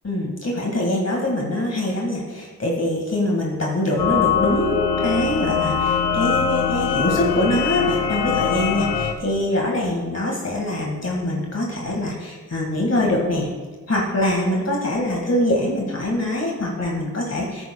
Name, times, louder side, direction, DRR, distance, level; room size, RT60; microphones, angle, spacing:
voice 1, 0.0-13.5 13.9-17.7, left 1 dB, 45° left, -2 dB, 1.8 m, -23 dB
sound 1, 4.0-9.1, left 6 dB, 85° left, 0.8 m, -22 dB
12.0 x 9.8 x 2.3 m, 1.4 s
cardioid pair, 55°, 36 cm